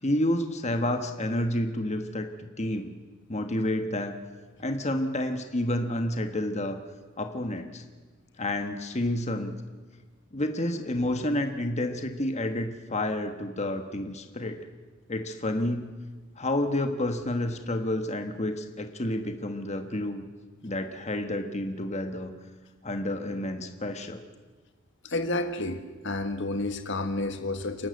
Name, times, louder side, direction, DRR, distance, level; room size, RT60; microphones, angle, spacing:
voice 1, 0.0-2.9 3.3-4.1 4.6-6.8 7.2-7.8 8.4-9.5 10.3-14.6 15.1-15.9 16.4-20.2 20.6-22.3 22.8-24.2, left 1 dB, 35° left, 6 dB, 1.4 m, -29 dB
voice 2, 25.0-27.9, left 2 dB, 60° left, 8 dB, 1.5 m, -30 dB
28.5 x 12.0 x 7.9 m, 1.3 s
head